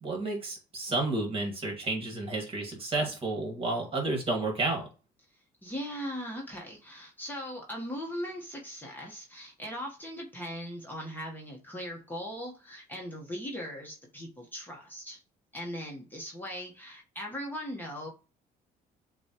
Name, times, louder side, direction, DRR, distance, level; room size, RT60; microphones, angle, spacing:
voice 1, 0.0-4.9, right 2 dB, 35° right, 2 dB, 1.8 m, -31 dB
voice 2, 5.6-15.2 15.5-18.1, equal, 10° left, -2 dB, 1.1 m, -39 dB
6.8 x 2.3 x 2.9 m, 0.34 s
cardioid pair, 110°, 17 cm